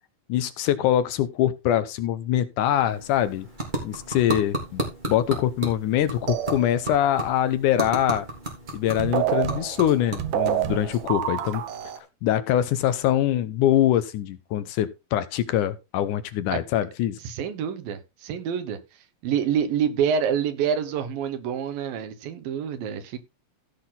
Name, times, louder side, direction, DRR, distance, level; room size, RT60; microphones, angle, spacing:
voice 1, 0.3-3.5 3.8-8.3 8.7-11.6 12.2-17.2, left 11 dB, 75° left, 2.1 m, -23 dB
sound 1, 2.6-12.1, right 1 dB, 15° right, 3.2 m, -34 dB
sound 2, 6.3-7.1 8.7-8.8 9.0-12.0, right 10 dB, 75° right, 2.6 m, -28 dB
voice 2, 17.2-18.8 19.2-23.2, right 7 dB, 90° right, 3.1 m, -27 dB
15.5 x 6.0 x 4.0 m
omnidirectional pair, 4.0 m